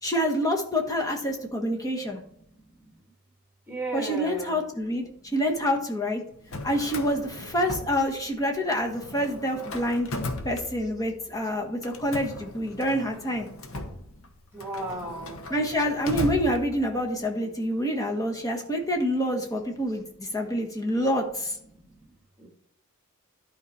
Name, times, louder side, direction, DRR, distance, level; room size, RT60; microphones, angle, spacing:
voice 1, 0.0-2.2 3.9-6.2 6.6-10.1 10.4-13.5 15.5-21.6, equal, 15° left, 2 dB, 1.3 m, -27 dB
voice 2, 3.7-4.6 14.5-15.4, right 2 dB, 10° right, 1 dB, 1.8 m, -34 dB
Drawer open or close, 6.3-8.5 8.8-11.2 11.8-17.1, left 2 dB, 70° left, 1.0 m, -37 dB
11.5 x 4.6 x 4.2 m, 0.72 s
head